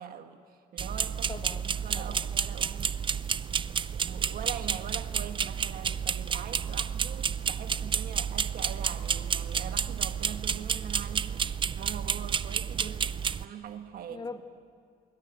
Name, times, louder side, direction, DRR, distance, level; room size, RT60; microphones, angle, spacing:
voice 1, 0.0-1.3 1.8-3.0 3.7-14.3, right 9 dB, 60° right, 1.9 m, -43 dB
sound 1, 0.8-13.5, right 7 dB, 30° right, 0.6 m, -31 dB
voice 2, 1.3-2.3 14.1-14.4, left 4 dB, 25° left, 2.0 m, -42 dB
26.0 x 23.0 x 8.8 m
cardioid pair, 110°, 17 cm